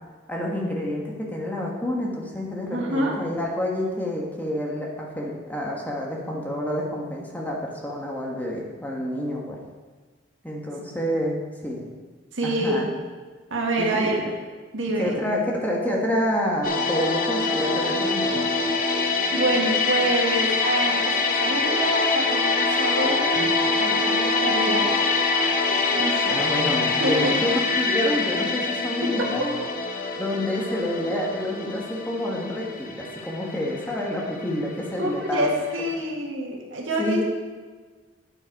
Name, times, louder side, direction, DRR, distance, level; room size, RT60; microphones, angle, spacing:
voice 1, 0.3-9.6 10.4-11.8 12.4-12.8 13.8-14.1 15.0-18.4 26.3-29.6 30.2-35.5 37.0-37.2, left 1 dB, 10° left, -2 dB, 1.4 m, -28 dB
voice 2, 2.7-3.1 12.3-12.9 13.5-14.3 14.7-15.2 19.3-23.3 23.8-25.0 25.9-26.4 27.0-27.3 29.0-29.3 33.0-33.2 35.0-37.2, right 1 dB, 90° right, -1 dB, 1.8 m, -26 dB
sound 1, 16.6-35.5 35.7-35.9, left 3 dB, 45° left, 0.8 m, -24 dB
9.1 x 7.7 x 4.7 m, 1.4 s
head